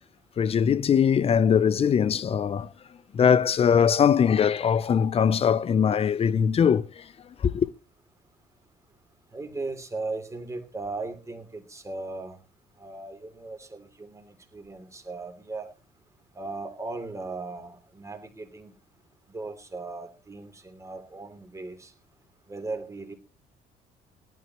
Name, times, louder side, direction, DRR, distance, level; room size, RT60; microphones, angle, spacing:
voice 1, 0.4-2.7 3.1-7.1 7.4-7.7, left 7 dB, 35° left, 0.6 m, -21 dB
voice 2, 9.3-12.4 12.8-15.7 16.3-18.7 19.3-21.9 22.5-23.1, right 3 dB, 15° right, 3.1 m, -37 dB
18.0 x 12.5 x 3.0 m
cardioid pair, 110°, 17 cm